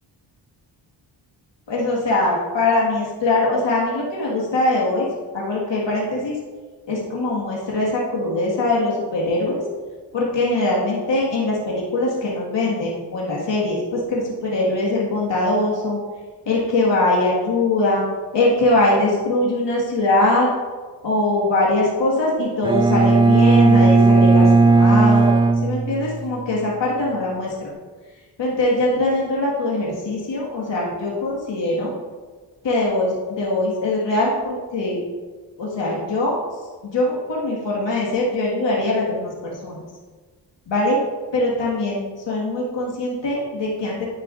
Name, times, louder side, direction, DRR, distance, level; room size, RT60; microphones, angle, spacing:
voice 1, 1.7-5.1 5.3-6.4 6.9-9.6 10.1-16.0 16.5-18.0 18.3-20.5 21.0-25.3 25.6-27.7 28.4-31.9 32.6-35.0 35.6-36.4 36.8-39.8 40.7-41.0 41.3-44.1, left 2 dB, 70° left, -4 dB, 1.8 m, -22 dB
Bowed string instrument, 22.6-26.5, right 3 dB, 10° right, 0.4 m, -15 dB
10.5 x 5.8 x 2.5 m, 1.4 s
cardioid pair, 75°, 45 cm